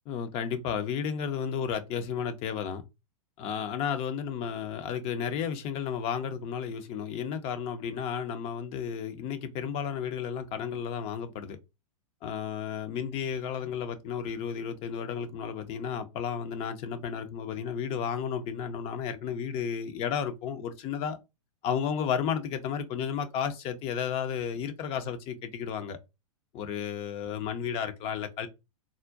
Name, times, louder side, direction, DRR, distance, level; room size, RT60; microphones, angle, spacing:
voice 1, 0.1-2.8 3.4-11.6 12.2-21.2 21.6-26.0 26.5-28.5, left 7 dB, 35° left, 0.5 m, -33 dB
3.6 x 2.1 x 2.4 m
figure-of-eight pair, 100°, 19 cm